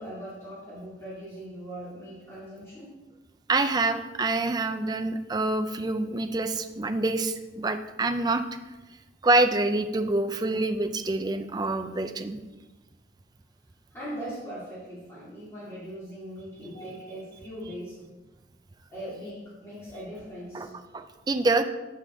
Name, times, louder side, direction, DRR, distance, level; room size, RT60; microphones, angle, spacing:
voice 1, 0.0-3.0 13.9-18.1 18.9-20.7, equal, 15° left, -10 dB, 2.1 m, -40 dB
voice 2, 3.5-8.4 9.2-12.4 20.5-20.7 20.9-21.6, right 2 dB, 20° right, 8 dB, 0.3 m, -26 dB
7.6 x 4.9 x 3.7 m, 1.1 s
head